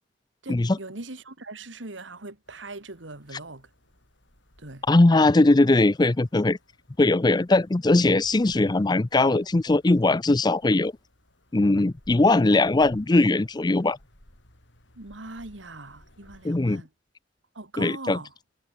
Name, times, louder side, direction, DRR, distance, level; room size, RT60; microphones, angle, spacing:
voice 1, 0.4-3.7 4.6-4.8 15.0-16.9 17.5-18.3, right 2 dB, 80° right, 2.4 m, -40 dB
sound 1, 2.5-16.7, left 1 dB, 75° left, 7.9 m, -58 dB
voice 2, 4.9-6.6 7.0-10.9 11.5-14.0 16.4-16.8 17.8-18.2, left 2 dB, 20° left, 0.5 m, -20 dB
head